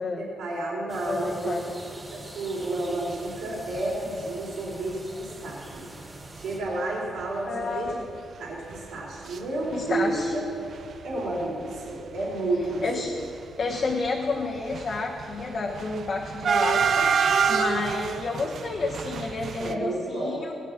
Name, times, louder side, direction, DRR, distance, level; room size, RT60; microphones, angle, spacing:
voice 1, 0.2-1.6 1.9-5.9 6.4-8.0 8.4-10.4 11.0-13.1 19.6-20.4, right 2 dB, 85° right, -4 dB, 3.8 m, -31 dB
sound 1, 0.9-6.6, right 1 dB, 15° right, 2.9 m, -44 dB
voice 2, 1.0-1.7 7.5-8.0 9.7-10.3 12.8-13.1 13.6-20.5, left 3 dB, 45° left, -1 dB, 1.2 m, -30 dB
sound 2, 3.8-4.0 4.5-4.6 4.7-4.9 5.7-5.8 6.2-6.4 6.7-6.8 7.2-9.4 9.6-10.4 10.6-19.7, right 6 dB, 55° right, 0.6 m, -28 dB
18.0 x 9.1 x 6.0 m, 2.5 s
cardioid pair, 125°, 0 cm